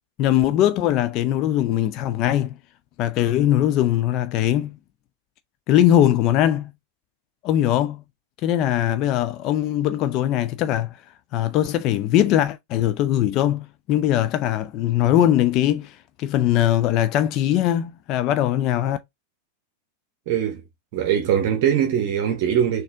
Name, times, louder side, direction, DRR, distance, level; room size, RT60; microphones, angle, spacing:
voice 1, 0.2-2.5 3.0-4.7 5.7-6.7 7.4-8.0 8.4-11.0 11.3-19.0, left 12 dB, 40° left, 0.3 m, -21 dB
voice 2, 20.3-20.6 20.9-22.8, right 9 dB, 45° right, 0.8 m, -21 dB
4.1 x 2.6 x 3.4 m
figure-of-eight pair, 90°, 0 cm